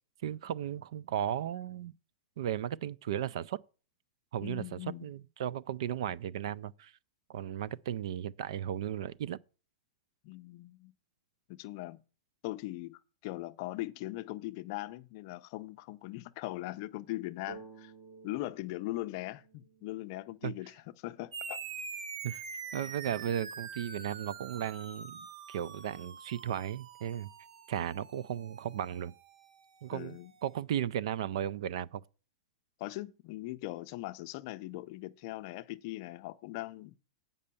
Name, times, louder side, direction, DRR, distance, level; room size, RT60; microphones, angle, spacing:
voice 1, 0.2-1.9 2.4-3.6 4.3-6.9 7.3-9.4 20.4-20.5 22.2-22.4 22.7-27.3 27.7-29.1 29.8-32.0, right 10 dB, 55° right, 0.3 m, -35 dB
voice 2, 4.4-5.1 10.2-10.9 11.5-12.0 12.4-17.9 18.2-21.6 23.0-23.1 29.9-30.3 32.8-36.9, left 18 dB, 35° left, 0.5 m, -40 dB
sound 1, 17.5-21.1, right 4 dB, 20° right, 1.0 m, -54 dB
sound 2, 21.3-30.2, right 5 dB, 75° right, 1.3 m, -45 dB
8.6 x 5.4 x 6.9 m
supercardioid pair, 170°, 3 cm